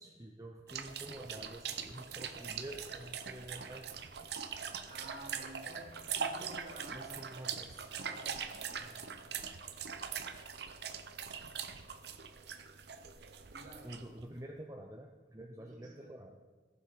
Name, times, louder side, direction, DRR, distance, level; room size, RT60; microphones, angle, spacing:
voice 1, 0.0-3.9 6.9-7.9 13.8-16.4, right 1 dB, 20° right, 2 dB, 0.6 m, -48 dB
sound 1, 0.7-14.2, right 7 dB, 65° right, 0.7 m, -42 dB
voice 2, 4.9-7.2 7.9-9.0 13.5-14.0 15.6-16.2, right 1 dB, 45° right, 1 dB, 2.1 m, -52 dB
15.0 x 7.0 x 5.1 m, 1.4 s
head